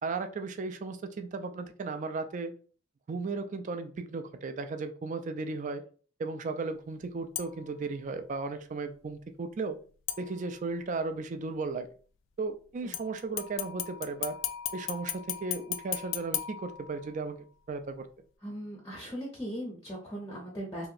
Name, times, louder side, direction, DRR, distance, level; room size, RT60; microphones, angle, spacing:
voice 1, 0.0-2.5 3.1-5.8 6.2-9.8 10.2-11.9 12.4-14.4 14.7-18.1, right 3 dB, 35° right, 8 dB, 0.3 m, -35 dB
sound 1, 7.4-7.8 10.1-10.8 12.9-17.3 17.8-17.9, left 11 dB, 65° left, 0.3 m, -37 dB
voice 2, 18.4-20.9, equal, 15° left, -2 dB, 0.6 m, -39 dB
2.9 x 2.7 x 2.4 m, 0.41 s
head